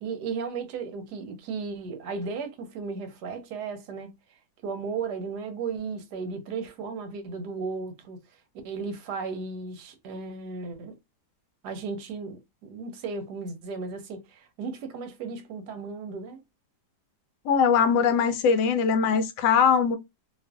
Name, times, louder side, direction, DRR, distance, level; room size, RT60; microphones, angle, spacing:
voice 1, 0.0-4.1 4.6-8.2 8.6-11.0 11.6-16.4, right 4 dB, 75° right, 1.1 m, -35 dB
voice 2, 17.5-20.0, left 6 dB, 75° left, 1.1 m, -21 dB
2.8 x 2.4 x 2.2 m
omnidirectional pair, 1.8 m